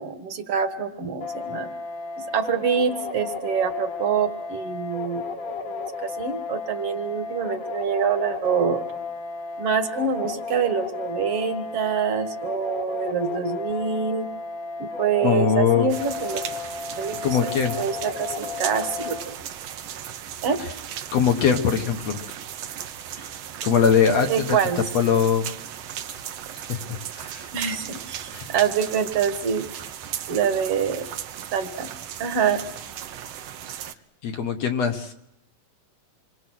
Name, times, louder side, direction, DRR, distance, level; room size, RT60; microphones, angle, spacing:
voice 1, 0.0-1.7 2.3-8.8 9.6-14.3 14.8-16.5 17.0-17.2 17.4-19.3 20.4-20.6 24.3-24.8 27.5-29.7 30.3-31.1 31.5-31.9 32.2-32.6, right 7 dB, 50° right, 8 dB, 2.1 m, -25 dB
sound 1, 1.2-19.2, left 4 dB, 80° left, 6.5 m, -33 dB
voice 2, 15.2-15.9 17.2-17.8 20.6-20.7 21.1-22.2 23.6-25.5 26.6-27.5 28.3-28.5 34.2-35.1, left 7 dB, 55° left, 5 dB, 2.2 m, -22 dB
sound 2, 15.9-33.9, right 10 dB, 70° right, 1.6 m, -36 dB
27.0 x 23.5 x 6.3 m, 0.81 s
omnidirectional pair, 4.0 m